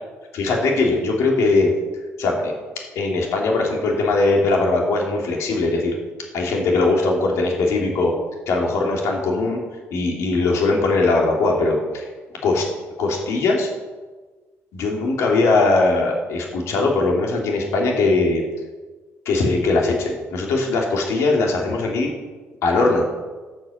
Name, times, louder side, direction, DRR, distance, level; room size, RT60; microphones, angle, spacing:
voice 1, 0.3-1.7 2.2-2.5 2.9-6.0 6.3-8.1 8.5-9.6 9.9-12.1 12.4-12.7 13.0-13.7 14.7-18.4 19.3-22.1 22.6-23.0, left 3 dB, 70° left, 0 dB, 2.6 m, -20 dB
12.0 x 6.2 x 7.7 m, 1.3 s
cardioid pair, 180°, 5 cm